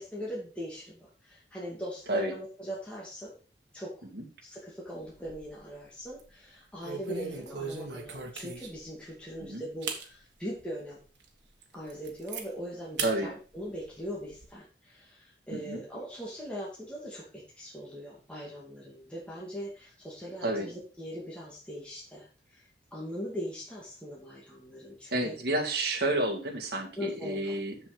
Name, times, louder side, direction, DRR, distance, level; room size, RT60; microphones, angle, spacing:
voice 1, 0.0-3.3 3.7-3.9 4.4-11.0 11.7-25.4 27.0-27.6, equal, 5° left, -5 dB, 2.4 m, -40 dB
sound 1, 5.0-5.7 6.1-6.3 6.8-8.9 9.4-9.5 9.8-10.1 10.6-10.7 11.2-11.3 11.6-12.4 13.0-13.2 13.5-14.5, right 5 dB, 80° right, 1.6 m, -39 dB
voice 2, 15.5-15.8 20.4-20.7 25.1-27.8, right 1 dB, 65° right, 1 dB, 2.1 m, -30 dB
7.1 x 7.1 x 5.1 m, 0.37 s
head